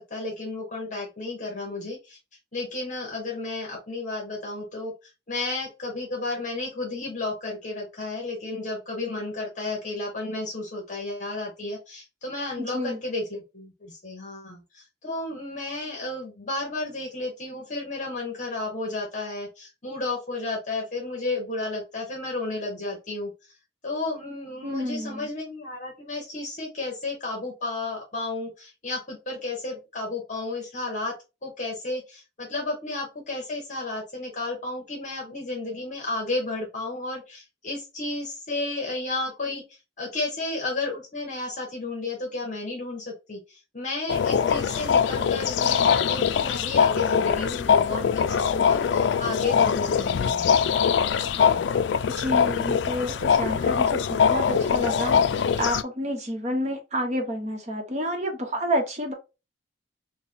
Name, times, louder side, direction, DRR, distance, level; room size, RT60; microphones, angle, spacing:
voice 1, 0.0-2.2 2.5-4.9 5.3-23.5 23.8-31.1 31.4-39.6 40.0-50.5 51.3-51.6, left 2 dB, 45° left, 1.2 m, -32 dB
voice 2, 12.6-13.0 24.6-25.3 52.2-59.1, equal, 40° right, 1.0 m, -29 dB
sound 1, 44.1-55.8, left 7 dB, 70° left, 0.3 m, -22 dB
3.4 x 2.2 x 3.8 m
head